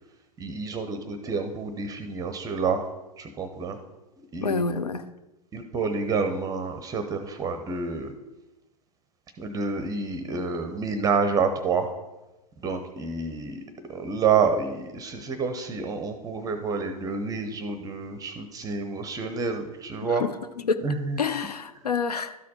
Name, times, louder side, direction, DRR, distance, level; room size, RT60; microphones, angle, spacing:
voice 1, 0.4-2.9 3.2-3.8 4.3-4.8 5.5-8.1 9.4-11.9 12.6-13.6 13.9-20.2 20.8-21.2, right 5 dB, 20° right, 0.6 m, -28 dB
voice 2, 4.4-5.1 20.2-20.3 20.6-20.8 21.2-22.4, left 5 dB, 85° left, 0.6 m, -27 dB
12.5 x 4.2 x 4.2 m
figure-of-eight pair, 105°, 20 cm